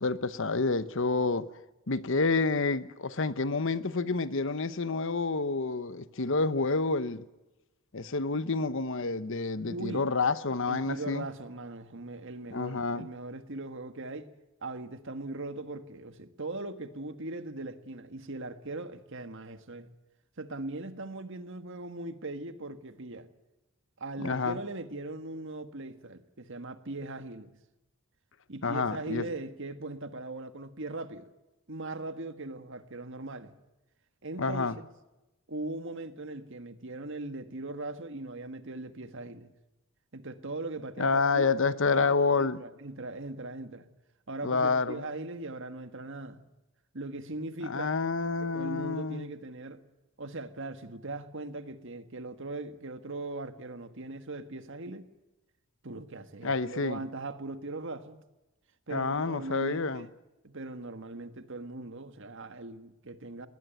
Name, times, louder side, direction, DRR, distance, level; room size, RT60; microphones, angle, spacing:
voice 1, 0.0-1.5 1.9-7.2 7.9-11.3 12.5-13.1 24.2-24.6 28.6-29.2 34.4-34.7 41.0-42.6 44.4-45.0 47.6-49.3 56.4-57.0 58.9-60.1, left 4 dB, 60° left, 1.0 m, -28 dB
voice 2, 9.7-10.1 10.7-14.3 14.6-19.9 20.4-23.3 24.0-27.5 28.5-31.3 31.7-33.5 34.2-34.9 35.5-39.5 40.1-41.5 41.9-43.9 44.3-46.4 46.9-47.9 48.4-49.8 50.2-55.1 55.8-58.2 58.9-60.1 60.4-63.5, right 2 dB, 60° right, 1.6 m, -39 dB
20.5 x 19.0 x 9.2 m
head